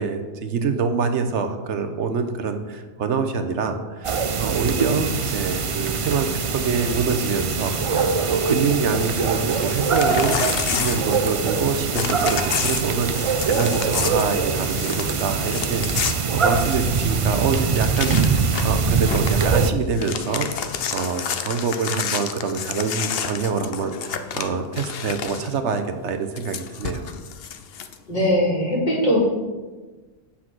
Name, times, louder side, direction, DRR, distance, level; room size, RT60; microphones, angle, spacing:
voice 1, 0.0-27.1, right 5 dB, 80° right, 8 dB, 1.1 m, -26 dB
sound 1, 4.0-19.7, right 5 dB, 45° right, 0.4 m, -23 dB
Crumpling crinkling / Tearing, 9.5-11.6 11.9-17.0 17.4-17.5 17.7-18.8 19.1-19.4 19.8-25.5 26.4-27.9, left 7 dB, 60° left, 0.9 m, -30 dB
voice 2, 28.1-29.3, left 1 dB, 40° left, -6 dB, 3.4 m, -20 dB
8.9 x 5.8 x 6.1 m, 1.3 s
omnidirectional pair, 1.2 m